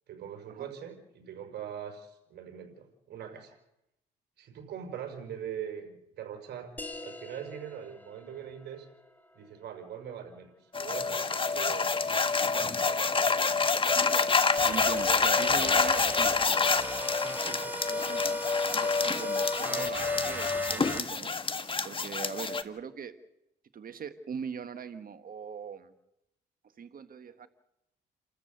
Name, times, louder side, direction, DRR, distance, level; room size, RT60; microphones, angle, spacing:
voice 1, 0.1-3.6 4.4-6.7 7.0-8.9 9.3-10.5 10.8-12.0 12.3-13.3 17.4-17.9, right 9 dB, 70° right, 4 dB, 5.5 m, -42 dB
sound 1, 6.8-11.9, left 2 dB, 10° left, 2.9 m, -48 dB
Soundscape Regenboog Abdillah Aiman Besal Otman, 10.7-22.6, left 4 dB, 30° left, 1.5 m, -27 dB
voice 2, 13.9-14.3 14.6-16.6 17.9-18.4 18.7-21.3 21.8-23.1 23.7-25.9 26.8-27.5, right 7 dB, 55° right, 10 dB, 1.6 m, -41 dB
sound 2, 14.6-21.0, right 1 dB, 10° right, 3.3 m, -38 dB
29.5 x 13.5 x 8.0 m, 0.84 s
cardioid pair, 75°, 18 cm